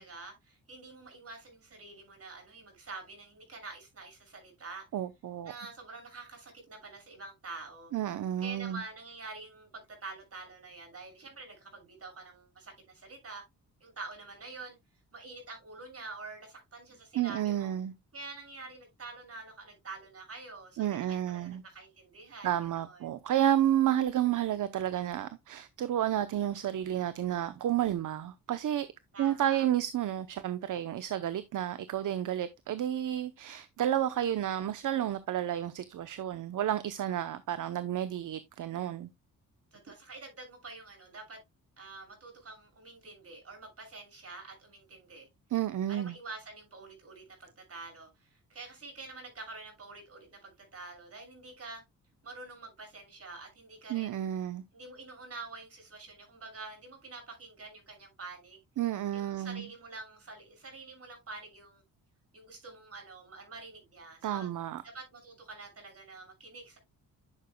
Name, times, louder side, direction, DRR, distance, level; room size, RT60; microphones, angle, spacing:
voice 1, 0.0-4.9 5.4-7.9 8.4-13.4 13.8-14.8 15.1-17.7 18.1-23.1 29.1-29.7 39.7-41.4 41.8-45.3 45.9-51.8 52.2-54.1 54.7-58.6 59.1-61.8 62.3-64.5 64.8-66.8, right 3 dB, 45° right, 6.3 m, -47 dB
voice 2, 4.9-5.5 7.9-8.8 17.1-17.9 20.8-21.6 22.4-28.9 29.2-39.1 45.5-46.1 53.9-54.6 58.8-59.7 64.2-64.8, right 11 dB, 60° right, 0.8 m, -31 dB
11.0 x 6.7 x 2.2 m
cardioid pair, 95°, 35 cm